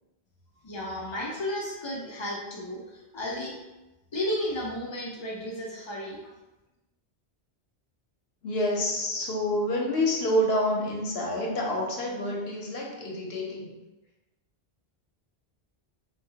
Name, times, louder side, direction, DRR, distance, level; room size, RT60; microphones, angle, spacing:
voice 1, 0.6-2.8 3.1-3.5 4.1-6.2, left 1 dB, 50° left, -3 dB, 0.3 m, -33 dB
voice 2, 8.4-13.7, left 1 dB, 70° left, -2 dB, 0.8 m, -28 dB
2.8 x 2.2 x 2.7 m, 1.0 s
omnidirectional pair, 1.1 m